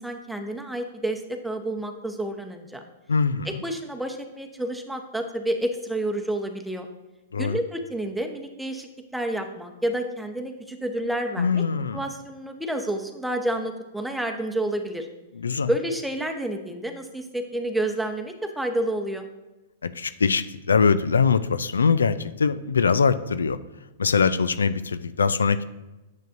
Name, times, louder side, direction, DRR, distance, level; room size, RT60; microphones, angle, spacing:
voice 1, 0.0-2.8 3.4-6.9 7.4-11.6 11.9-15.1 15.7-19.3, right 1 dB, 5° right, 4 dB, 0.9 m, -29 dB
voice 2, 3.1-3.5 7.3-7.6 11.4-12.0 15.4-15.7 19.8-23.6 24.0-25.6, left 5 dB, 85° left, 13 dB, 0.3 m, -22 dB
9.1 x 7.5 x 2.6 m, 1.1 s
hypercardioid pair, 115°, 0 cm